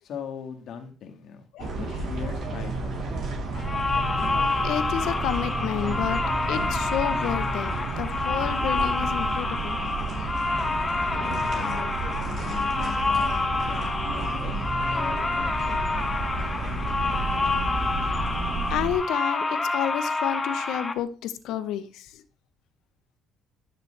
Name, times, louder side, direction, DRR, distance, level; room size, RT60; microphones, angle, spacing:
voice 1, 0.0-3.1 10.5-10.8 11.2-15.8, left 6 dB, 65° left, 4 dB, 1.8 m, -40 dB
sound 1, 1.6-18.9, right 3 dB, 60° right, 3.4 m, -31 dB
sound 2, 3.6-20.9, left 3 dB, 20° left, 1.2 m, -28 dB
voice 2, 4.6-6.2 6.5-9.8 10.1-10.3 18.7-22.2, left 10 dB, 80° left, 11 dB, 0.9 m, -30 dB
11.0 x 6.6 x 3.3 m, 0.38 s
cardioid pair, 100°, 0 cm